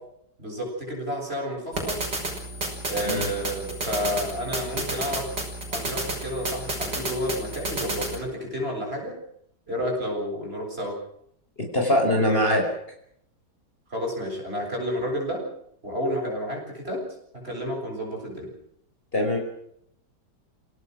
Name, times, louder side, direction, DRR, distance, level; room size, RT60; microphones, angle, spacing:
voice 1, 0.4-2.0 2.9-5.3 5.7-9.2 9.7-11.0 13.9-15.4 15.8-17.0 17.3-18.5, equal, 35° right, 0 dB, 8.3 m, -30 dB
sound 1, 1.7-8.2, right 2 dB, 75° right, 6.4 m, -31 dB
voice 2, 11.6-12.7 19.1-19.4, left 1 dB, 30° left, 2 dB, 5.3 m, -22 dB
29.0 x 18.0 x 6.3 m, 0.71 s
omnidirectional pair, 1.9 m